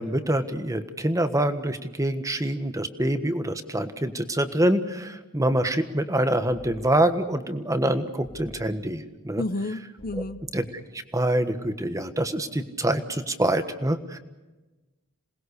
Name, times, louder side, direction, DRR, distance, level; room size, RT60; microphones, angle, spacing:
voice 1, 0.0-9.4 10.5-10.6 11.1-14.2, right 1 dB, 15° right, 9 dB, 1.4 m, -25 dB
sound 1, 8.2-9.0 10.0-10.7, equal, 70° left, 4.0 m, -48 dB
voice 2, 9.4-10.4, left 2 dB, 45° left, 12 dB, 0.7 m, -31 dB
27.5 x 20.0 x 6.6 m, 1.1 s
head